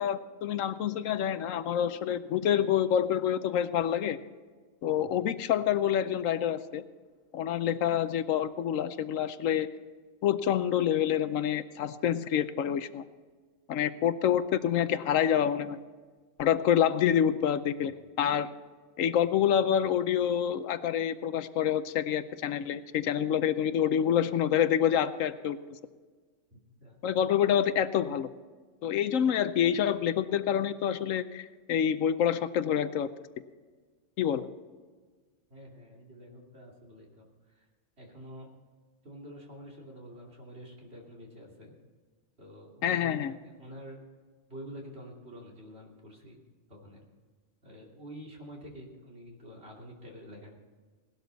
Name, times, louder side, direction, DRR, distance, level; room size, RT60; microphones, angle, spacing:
voice 1, 0.0-4.2 4.8-6.8 7.3-9.7 10.2-13.0 13.7-15.8 16.4-18.5 19.0-25.6 27.0-28.3 28.8-33.1 34.2-34.5 42.8-43.3, left 9 dB, 80° left, 13 dB, 1.1 m, -27 dB
voice 2, 4.9-5.2 26.5-27.0 35.5-37.7 38.0-38.5 39.0-41.7 42.4-44.0 44.5-46.4 46.7-47.0 47.6-50.5, equal, 50° right, -2 dB, 3.1 m, -48 dB
18.0 x 12.5 x 4.0 m, 1.4 s
omnidirectional pair, 1.4 m